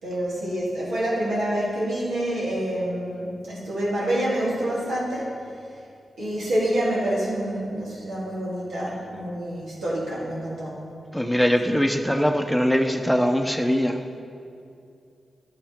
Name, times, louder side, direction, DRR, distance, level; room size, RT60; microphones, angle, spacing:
voice 1, 0.0-5.3 6.2-10.8, right 1 dB, 85° right, -7 dB, 2.6 m, -27 dB
voice 2, 11.1-14.0, equal, ahead, 5 dB, 0.7 m, -22 dB
11.5 x 6.6 x 5.1 m, 2.5 s
cardioid pair, 45°, 0 cm